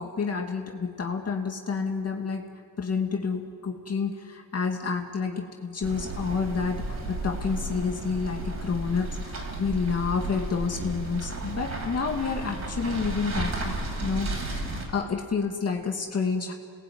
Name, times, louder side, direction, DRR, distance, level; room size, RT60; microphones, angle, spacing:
voice 1, 0.0-14.3 14.6-16.5, left 5 dB, 45° left, 2 dB, 2.4 m, -29 dB
sound 1, 5.8-14.8, right 2 dB, 50° right, 6.6 m, -33 dB
29.5 x 20.5 x 9.6 m, 2.4 s
cardioid pair, 95°, 34 cm